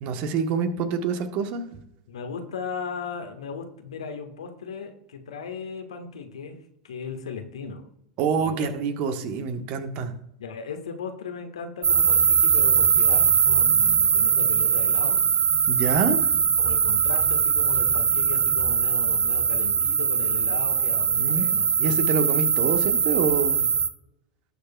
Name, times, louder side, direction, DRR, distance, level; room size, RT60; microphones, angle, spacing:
voice 1, 0.0-1.6 8.2-10.1 15.7-16.3 21.1-23.7, right 5 dB, 45° right, 8 dB, 1.2 m, -26 dB
voice 2, 2.1-6.6 6.8-7.8 8.4-8.7 10.4-15.2 16.6-21.7, left 5 dB, 70° left, 6 dB, 1.3 m, -36 dB
sound 1, 11.8-23.9, right 6 dB, 20° right, 0.8 m, -21 dB
18.5 x 6.6 x 2.2 m, 0.78 s
figure-of-eight pair, 85°, 3 cm